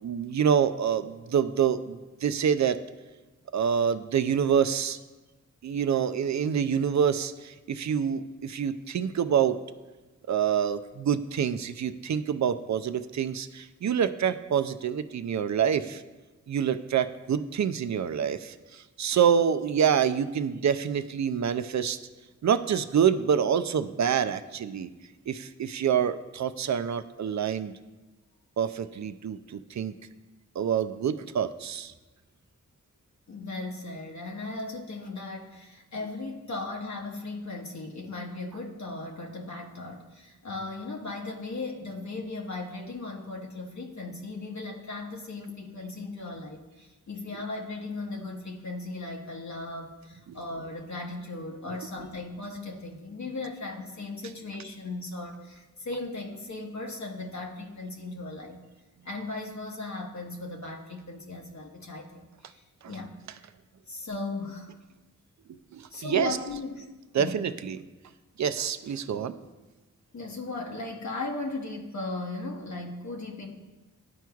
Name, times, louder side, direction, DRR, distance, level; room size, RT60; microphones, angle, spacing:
voice 1, 0.0-2.8 3.5-5.0 5.6-9.6 10.3-16.0 16.5-22.0 22.4-24.9 25.3-27.7 28.6-30.0 30.6-31.9 50.3-50.4 62.8-62.9 65.5-66.4 67.1-67.8 68.4-69.5, right 8 dB, 65° right, 11 dB, 0.4 m, -27 dB
voice 2, 33.3-58.6 59.0-63.1 63.4-63.5 63.9-64.7 65.9-66.9 67.2-67.4 70.1-73.5, left 2 dB, 65° left, 0 dB, 1.0 m, -37 dB
12.0 x 4.5 x 2.3 m, 1.1 s
cardioid pair, 40°, 31 cm